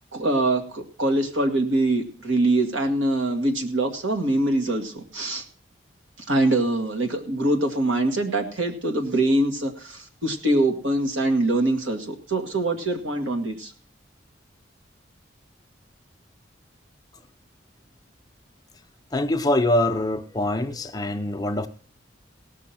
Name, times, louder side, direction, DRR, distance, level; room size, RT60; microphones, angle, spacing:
voice 1, 0.1-5.4 6.3-13.7, right 2 dB, 85° right, 4 dB, 2.1 m, -23 dB
voice 2, 19.1-21.7, left 1 dB, 20° left, 7 dB, 0.6 m, -24 dB
18.0 x 6.2 x 5.9 m, 0.42 s
head